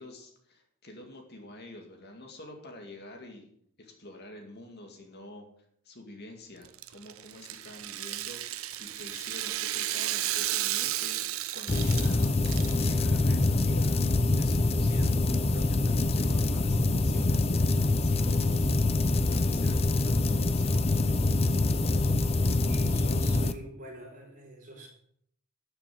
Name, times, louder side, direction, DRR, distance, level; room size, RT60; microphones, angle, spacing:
voice 1, 0.0-3.5 3.8-5.5 5.8-14.0 14.3-18.6 19.3-21.3, left 1 dB, 45° left, 3 dB, 2.2 m, -47 dB
Rattle (instrument), 6.6-12.9, right 14 dB, 70° right, 0.7 m, -33 dB
sound 1, 11.7-23.5, left 2 dB, 25° left, 0.6 m, -25 dB
voice 2, 22.6-24.9, right 1 dB, 35° right, -1 dB, 4.8 m, -44 dB
13.0 x 6.9 x 7.7 m, 0.69 s
head